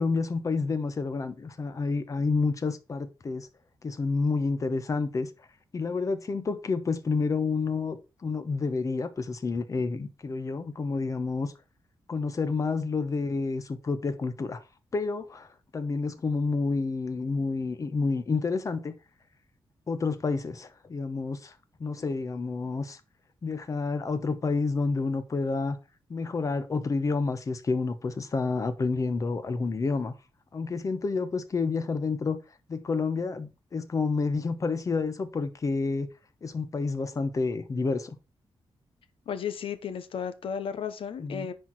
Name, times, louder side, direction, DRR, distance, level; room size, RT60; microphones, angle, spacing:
voice 1, 0.0-3.5 3.8-5.3 5.7-8.0 8.2-11.5 12.1-14.6 14.9-15.5 15.7-18.9 19.9-21.5 21.8-23.0 23.4-25.8 26.1-30.1 30.5-32.4 32.7-36.1 36.4-38.2 41.2-41.5, left 4 dB, 35° left, 1.0 m, -29 dB
voice 2, 39.3-41.5, left 7 dB, 80° left, 1.1 m, -34 dB
10.0 x 4.6 x 4.6 m
wide cardioid pair, 150°, 9 cm